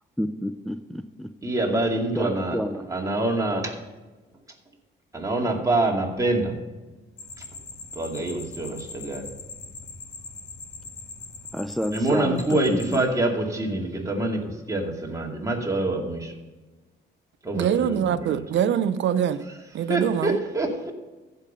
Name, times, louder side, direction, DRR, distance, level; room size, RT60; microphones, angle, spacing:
voice 1, 0.2-1.3 2.2-2.8 11.5-12.8, equal, ahead, 9 dB, 0.4 m, -29 dB
voice 2, 1.4-3.8 5.1-6.6 7.4-7.5 7.9-9.3 11.9-16.3 17.4-18.4 19.9-20.9, right 2 dB, 15° right, 0 dB, 2.2 m, -26 dB
sound 1, 7.2-13.0, left 4 dB, 85° left, 2.1 m, -41 dB
voice 3, 17.6-19.4 19.7-20.4, right 9 dB, 70° right, 14 dB, 0.6 m, -23 dB
14.5 x 5.4 x 5.5 m, 1.2 s
cardioid pair, 90°, 20 cm